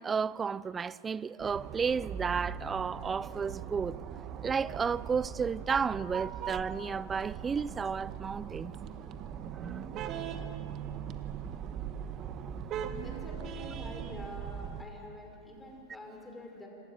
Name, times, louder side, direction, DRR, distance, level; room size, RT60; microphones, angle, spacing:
voice 1, 0.0-4.0 4.4-8.7 9.6-9.8, right 6 dB, 20° right, 0.4 m, -32 dB
sound 1, 1.4-14.8, right 8 dB, 40° right, 1.2 m, -40 dB
voice 2, 13.0-16.7, left 1 dB, 10° left, 5.2 m, -46 dB
27.0 x 12.5 x 8.9 m
hypercardioid pair, 105°, 0 cm